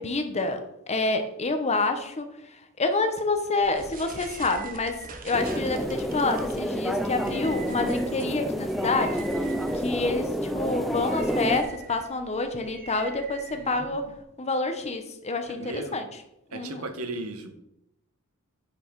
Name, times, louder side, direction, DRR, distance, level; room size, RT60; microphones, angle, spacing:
voice 1, 0.0-14.1 14.4-16.0 16.5-16.8, left 3 dB, 30° left, 7 dB, 1.0 m, -28 dB
sound 1, 3.6-14.2, right 4 dB, 40° right, 1.1 m, -44 dB
sound 2, 5.3-11.6, equal, ahead, 0.5 m, -29 dB
voice 2, 13.5-14.1 15.5-16.0 16.5-17.5, right 2 dB, 75° right, 7 dB, 1.3 m, -37 dB
9.8 x 5.5 x 4.7 m, 0.83 s
head